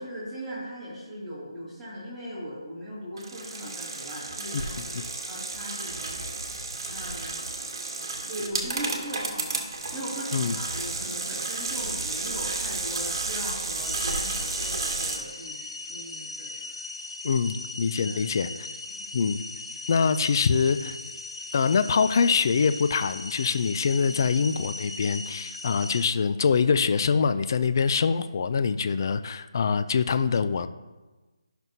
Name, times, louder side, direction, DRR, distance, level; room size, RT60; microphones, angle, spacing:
voice 1, 0.0-6.2 6.9-7.4 8.3-16.5 18.0-18.5 18.9-19.0 24.0-24.3, equal, ahead, -14 dB, 2.6 m, -39 dB
sound 1, 3.2-15.2, right 3 dB, 50° right, 1.3 m, -32 dB
voice 2, 4.5-5.0 10.3-10.5 17.2-18.7 19.1-19.4 19.9-21.0 21.5-30.7, left 5 dB, 45° left, 12 dB, 0.3 m, -24 dB
sound 2, 13.8-26.1, left 3 dB, 80° left, 1.2 m, -38 dB
12.5 x 6.0 x 2.7 m, 1.2 s
figure-of-eight pair, 160°, 3 cm